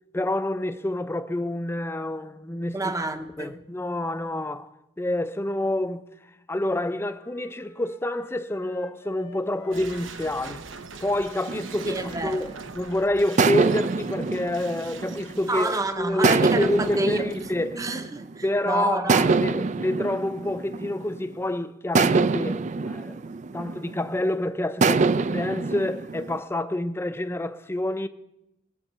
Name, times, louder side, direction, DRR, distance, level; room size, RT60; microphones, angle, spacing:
voice 1, 0.1-2.8 3.4-4.7 5.0-6.1 6.5-10.6 11.0-17.9 18.4-23.2 23.5-28.1, left 1 dB, 15° left, 0.5 m, -28 dB
voice 2, 2.7-3.6 11.9-12.5 15.5-17.3 17.8-19.5, right 2 dB, 20° right, 0.8 m, -28 dB
Wind instrument woodwind instrument, 7.1-10.7 10.9-14.8, left 3 dB, 80° left, 1.5 m, -50 dB
sound 1, 9.7-17.8, right 5 dB, 85° right, 0.8 m, -43 dB
sound 2, 11.5-12.8 13.4-15.6 16.2-18.4 19.1-21.3 21.9-24.2 24.8-26.4, right 4 dB, 40° right, 0.4 m, -25 dB
20.5 x 7.0 x 5.6 m
head